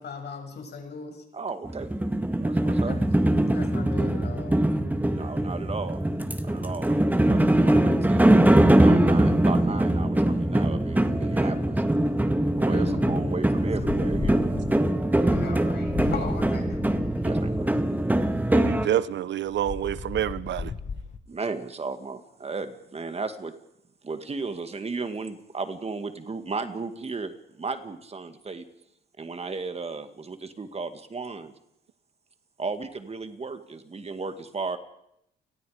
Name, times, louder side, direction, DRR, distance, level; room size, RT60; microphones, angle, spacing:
voice 1, 0.0-1.2 2.8-3.0 3.5-4.6 12.7-13.3 15.2-17.2, left 5 dB, 55° left, 7.0 m, -38 dB
voice 2, 1.3-1.9 2.4-3.0 5.2-6.1 6.4-8.5 8.8-11.8 12.6-14.4 17.2-17.5 21.3-23.5 24.0-28.7 29.2-31.5 32.6-34.8, right 4 dB, 30° right, 2.2 m, -35 dB
sound 1, 1.6-18.9, right 1 dB, 10° right, 1.9 m, -22 dB
sound 2, 13.8-17.7 19.5-21.2, left 5 dB, 40° left, 1.7 m, -36 dB
voice 3, 18.5-20.7, right 11 dB, 65° right, 0.8 m, -27 dB
30.0 x 20.0 x 5.1 m
cardioid pair, 90°, 20 cm